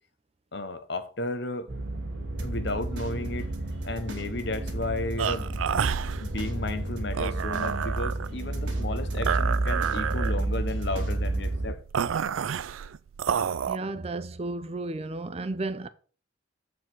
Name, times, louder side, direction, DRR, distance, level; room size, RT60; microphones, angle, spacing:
voice 1, 0.5-1.7 2.4-3.5 3.8-5.5 6.2-11.8, left 2 dB, 60° left, 0.9 m, -33 dB
sound 1, 1.7-11.7, right 2 dB, 55° right, 2.1 m, -31 dB
sound 2, 2.4-11.5, right 2 dB, 70° right, 2.1 m, -43 dB
sound 3, 5.2-13.8, right 8 dB, 90° right, 0.4 m, -30 dB
voice 2, 13.7-15.9, right 2 dB, 30° right, 0.5 m, -33 dB
8.1 x 4.7 x 6.0 m
head